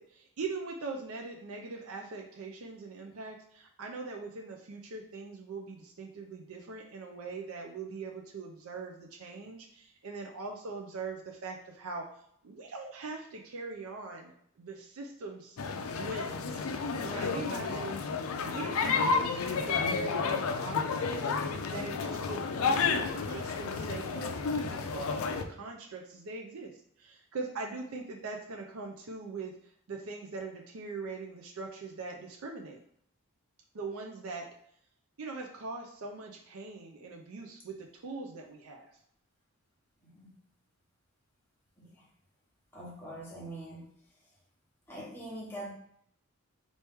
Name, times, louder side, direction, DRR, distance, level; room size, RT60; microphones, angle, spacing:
voice 1, 0.0-12.1 12.4-15.6 16.0-16.7 17.0-18.0 18.4-21.3 21.7-29.5 29.9-32.8 33.7-34.5 35.2-38.9, right 3 dB, 75° right, 2 dB, 0.5 m, -42 dB
sound 1, 15.6-25.4, left 5 dB, 70° left, 0.4 m, -31 dB
voice 2, 42.7-43.9 44.9-45.7, right 1 dB, 10° left, -4 dB, 1.0 m, -43 dB
4.2 x 3.0 x 3.4 m, 0.68 s
head